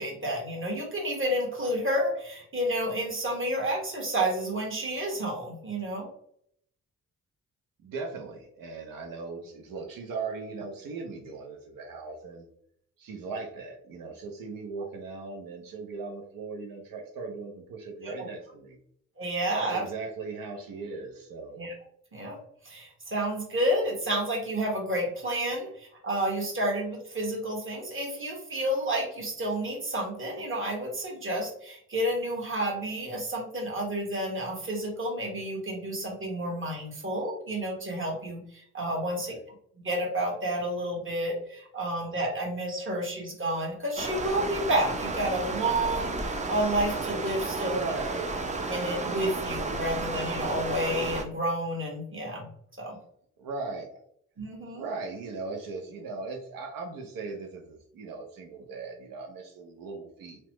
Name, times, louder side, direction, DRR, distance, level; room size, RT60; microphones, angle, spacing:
voice 1, 0.0-6.1 18.0-18.1 19.2-19.8 21.6-21.7 22.1-22.4 22.6-39.3 39.8-47.8 48.7-52.5 52.8-53.0 54.4-54.8, right 1 dB, 35° right, -1 dB, 1.4 m, -30 dB
voice 2, 7.8-12.5 13.0-18.8 19.5-21.6 39.0-39.4 47.6-48.3 53.4-53.9 54.7-60.4, right 4 dB, 75° right, 2 dB, 0.7 m, -38 dB
Stream, 44.0-51.2, right 3 dB, 20° right, 0.5 m, -32 dB
3.0 x 2.1 x 2.9 m, 0.68 s
supercardioid pair, 55°, 34 cm